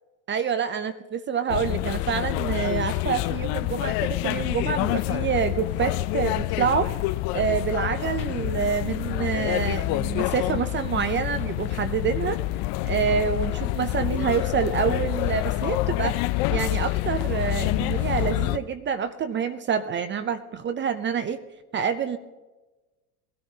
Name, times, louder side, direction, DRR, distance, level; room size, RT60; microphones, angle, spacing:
voice 1, 0.3-6.9 7.3-12.4 12.8-16.2 16.5-21.4 21.7-22.2, right 7 dB, 25° right, 13 dB, 0.5 m, -27 dB
sound 1, 1.5-18.6, left 17 dB, 55° left, 0.6 m, -27 dB
20.0 x 13.0 x 2.8 m, 1.2 s
hypercardioid pair, 95°, 47 cm